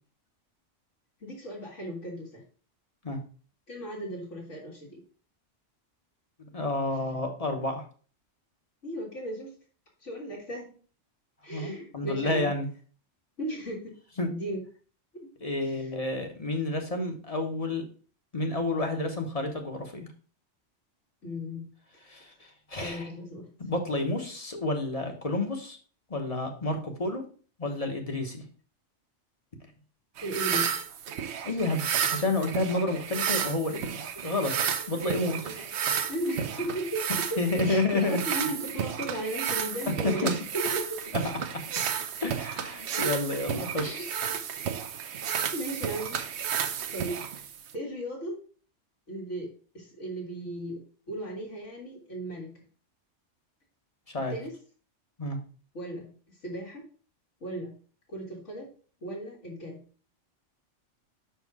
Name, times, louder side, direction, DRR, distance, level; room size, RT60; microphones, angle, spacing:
voice 1, 1.2-2.4 3.7-5.0 8.8-9.6 10.0-10.8 11.4-12.5 13.4-13.9 14.3-14.6 15.6-15.9 21.2-21.6 22.8-23.4 30.2-30.7 35.3-35.7 36.1-41.0 43.8-44.0 45.1-46.2 46.9-47.5 47.7-48.4 49.1-49.5 49.7-50.8 51.1-52.5 54.3-54.5 55.7-56.9 57.4-57.7 58.1-58.7 59.0-59.8, right 1 dB, 80° left, -5 dB, 2.2 m, -36 dB
voice 2, 6.5-7.8 11.5-12.7 14.2-14.3 15.4-17.8 18.3-20.1 22.1-22.3 22.7-23.1 23.6-25.8 26.1-27.2 27.6-28.4 31.4-31.8 32.1-34.5 34.9-35.6 37.4-38.2 40.0-40.3 42.2-44.1 54.1-54.3 55.2-55.4, left 2 dB, 30° left, 3 dB, 1.1 m, -30 dB
sound 1, 30.2-47.8, right 8 dB, 70° right, 0.9 m, -32 dB
6.2 x 4.6 x 4.7 m, 0.41 s
omnidirectional pair, 1.2 m